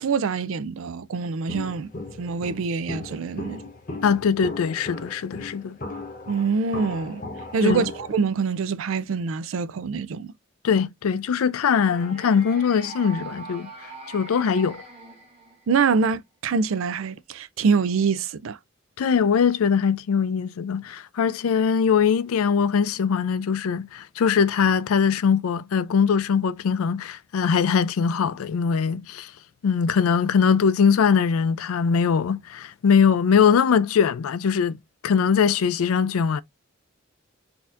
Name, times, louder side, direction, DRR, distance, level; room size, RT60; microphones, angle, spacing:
voice 1, 0.0-1.9 2.2-3.6 6.3-7.2 7.5-10.3 15.7-18.6, right 5 dB, 70° right, 0.4 m, -25 dB
Walk footsteps, 1.5-8.2, left 2 dB, 40° left, 0.9 m, -37 dB
voice 2, 4.0-5.8 7.6-7.9 10.6-13.7 14.1-14.8 19.0-29.3 29.6-34.8 35.0-36.4, left 6 dB, 90° left, 0.4 m, -21 dB
sound 1, 11.7-15.9, right 3 dB, 30° right, 1.0 m, -41 dB
4.1 x 2.7 x 2.4 m
head